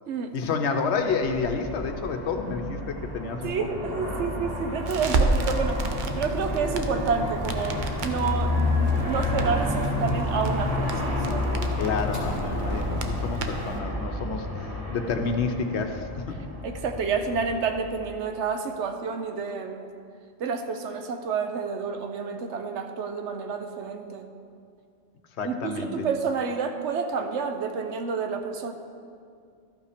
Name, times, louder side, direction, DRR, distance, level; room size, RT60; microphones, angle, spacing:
voice 1, 0.3-3.7 11.8-14.5 14.9-16.4 25.4-26.1, left 5 dB, 70° left, 6 dB, 1.0 m, -29 dB
Aircraft, 1.1-18.3, left 1 dB, 5° right, 2.4 m, -30 dB
voice 2, 3.4-5.8 6.1-11.6 16.6-19.9 20.4-24.2 25.4-28.7, right 5 dB, 70° right, 6 dB, 1.0 m, -29 dB
Crackle, 4.8-13.8, right 3 dB, 50° right, 0.7 m, -32 dB
sound 1, 5.3-13.3, left 2 dB, 20° left, 2.9 m, -36 dB
13.0 x 5.5 x 5.0 m, 2.3 s
omnidirectional pair, 1.3 m